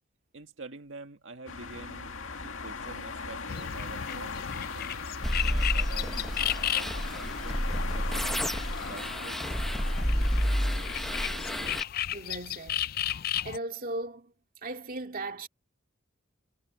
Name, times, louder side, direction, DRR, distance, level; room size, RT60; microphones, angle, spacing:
voice 1, 0.3-2.1 2.4-4.9 5.4-8.5 8.8-9.4, right 3 dB, 70° right, 1.9 m, -47 dB
sound 1, 1.5-11.8, left 4 dB, 85° left, 2.1 m, -39 dB
sound 2, 3.5-9.5 9.8-13.6, left 11 dB, 50° left, 0.4 m, -35 dB
sound 3, 5.2-11.8, equal, ahead, 0.8 m, -30 dB
voice 2, 12.1-12.9 13.4-14.3 14.6-15.5, right 2 dB, 45° right, 2.3 m, -37 dB
head